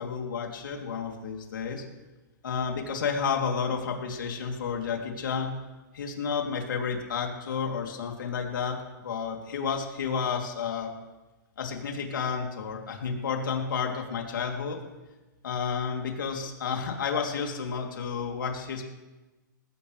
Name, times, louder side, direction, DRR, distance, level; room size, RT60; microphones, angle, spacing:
voice 1, 0.0-1.8 2.4-5.6 5.9-10.9 11.6-14.8 15.4-18.8, left 6 dB, 75° left, 1 dB, 3.2 m, -31 dB
20.0 x 16.5 x 3.4 m, 1.1 s
hypercardioid pair, 140°, 11 cm